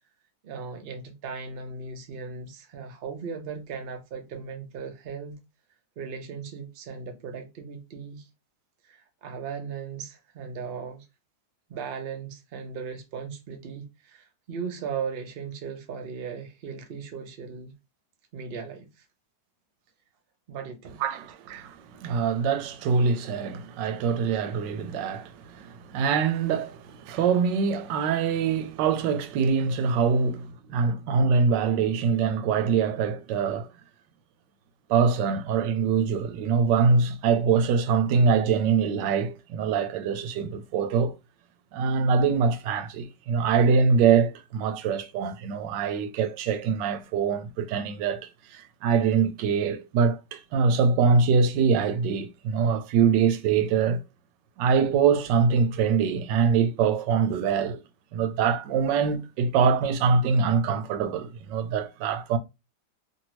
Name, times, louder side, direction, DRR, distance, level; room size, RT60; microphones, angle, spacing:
voice 1, 0.4-5.4 6.0-8.3 8.9-11.1 11.7-17.7 18.3-18.9 20.5-21.1, right 6 dB, 60° right, 0.6 m, -37 dB
voice 2, 21.0-33.7 34.9-41.1 41.7-54.0 54.6-57.8 58.1-62.4, right 5 dB, 90° right, 1.2 m, -24 dB
2.8 x 2.7 x 2.9 m
omnidirectional pair, 1.9 m